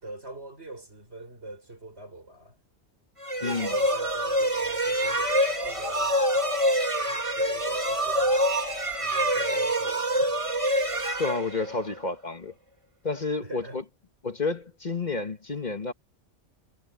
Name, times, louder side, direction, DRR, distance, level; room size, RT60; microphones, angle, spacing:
voice 1, 0.0-2.6 3.4-6.5 7.1-8.4 9.0-10.4 13.4-13.8, right 2 dB, 70° right, 6.7 m, -44 dB
sound 1, 3.2-12.0, equal, 30° right, 2.0 m, -26 dB
voice 2, 3.4-3.7 11.2-12.5 13.0-13.8 14.2-15.9, left 3 dB, 40° left, 1.4 m, -30 dB
omnidirectional pair, 1.1 m